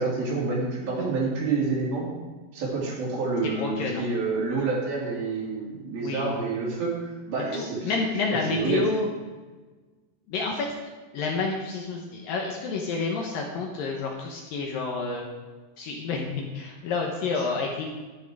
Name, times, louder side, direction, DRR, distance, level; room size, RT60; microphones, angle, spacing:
voice 1, 0.0-2.1 2.5-7.9 8.3-8.8, right 4 dB, 60° right, -4 dB, 4.7 m, -28 dB
voice 2, 3.5-4.1 6.0-6.3 7.5-9.1 10.3-10.7 11.1-15.2 15.8-17.9, left 4 dB, 70° left, 0 dB, 2.4 m, -29 dB
11.0 x 11.0 x 4.8 m, 1.3 s
omnidirectional pair, 4.9 m